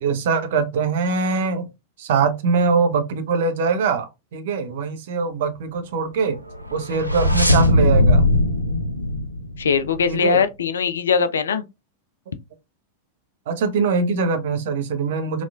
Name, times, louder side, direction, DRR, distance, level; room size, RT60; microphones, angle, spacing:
voice 1, 0.0-1.7 2.0-6.4 6.7-8.2 10.1-10.4 12.3-12.4 13.5-15.4, right 5 dB, 55° right, 0.7 m, -22 dB
sound 1, 6.5-10.1, left 1 dB, 90° right, 0.5 m, -19 dB
voice 2, 9.6-11.6, left 5 dB, 65° left, 0.4 m, -20 dB
4.1 x 2.9 x 2.3 m
figure-of-eight pair, 90°, 0 cm